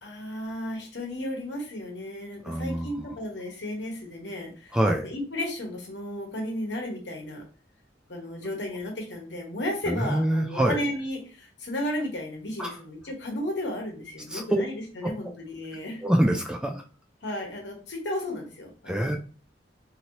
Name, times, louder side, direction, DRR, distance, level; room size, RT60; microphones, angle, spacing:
voice 1, 0.0-4.8 5.0-7.4 8.1-16.0 17.2-19.2, left 1 dB, 75° left, 1 dB, 1.0 m, -34 dB
voice 2, 2.4-3.1 4.7-5.1 9.9-10.8 12.6-12.8 14.3-14.6 15.0-15.1 16.0-16.8 18.9-19.2, right 1 dB, 5° right, 2 dB, 0.3 m, -25 dB
2.8 x 2.7 x 3.0 m, 0.37 s
head